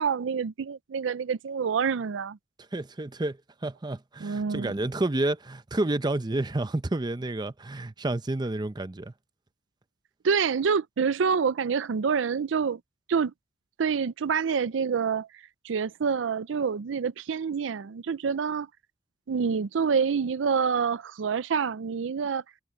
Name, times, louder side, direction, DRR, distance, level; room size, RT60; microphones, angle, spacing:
voice 1, 0.0-2.4 4.2-4.7 10.2-12.8 13.1-13.3 13.8-15.3 15.6-18.7 19.3-22.4, right 6 dB, 80° right, 0.4 m, -27 dB
voice 2, 2.7-9.1, right 2 dB, 25° right, 0.6 m, -30 dB
head